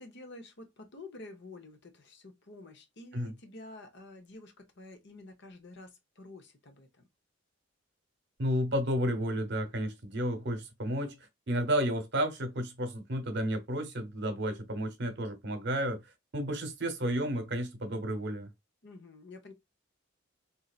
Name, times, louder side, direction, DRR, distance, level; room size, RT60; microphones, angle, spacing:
voice 1, 0.0-7.0 18.8-19.5, left 2 dB, 60° left, 1.0 m, -49 dB
voice 2, 8.4-11.1 11.5-16.0 16.3-18.5, equal, 60° right, 1.0 m, -32 dB
4.0 x 2.8 x 2.4 m
head